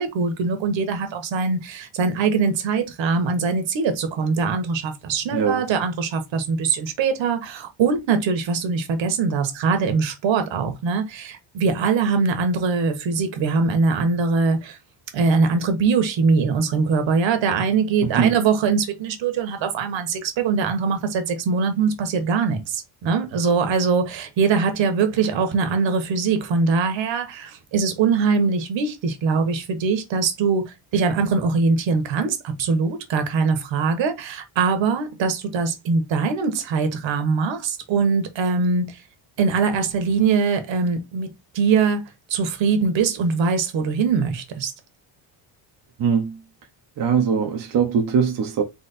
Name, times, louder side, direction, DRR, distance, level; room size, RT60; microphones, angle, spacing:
voice 1, 0.0-14.8 15.1-39.0 39.4-41.3 41.5-42.0 42.3-44.7, right 5 dB, 65° right, 1.3 m, -22 dB
voice 2, 5.3-5.6 18.1-18.4 46.0-46.4 47.0-48.6, right 6 dB, 45° right, 0.7 m, -21 dB
4.1 x 3.0 x 4.1 m
cardioid pair, 170°, 50 cm